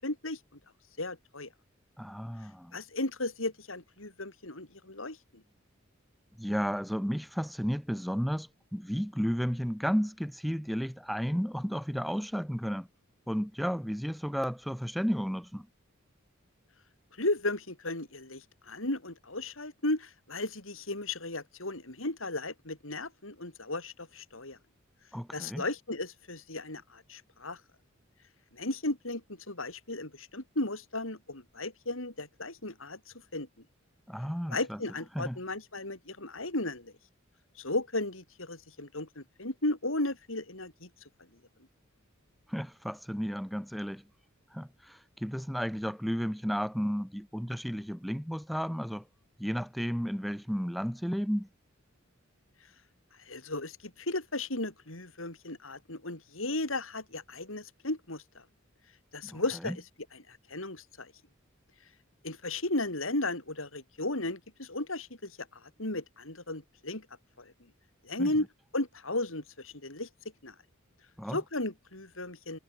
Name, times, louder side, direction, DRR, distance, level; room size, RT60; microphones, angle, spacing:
voice 1, 0.0-0.4 1.0-1.5 2.7-5.4 17.2-24.6 25.3-27.6 28.5-33.0 33.3-33.5 34.5-36.9 37.6-40.9 53.3-58.4 59.1-59.7 60.3-61.1 62.2-65.3 65.6-67.1 67.4-67.5 68.0-68.5 68.7-70.1 70.4-70.5 71.3-72.6, left 2 dB, 75° left, 5.8 m, -35 dB
voice 2, 2.0-2.8 6.4-12.9 13.3-15.7 25.1-25.6 34.1-34.8 35.1-35.4 42.5-44.0 44.5-49.0 49.4-51.5 59.2-59.8 68.2-68.3 71.2-71.4, equal, ahead, 2.5 m, -33 dB
head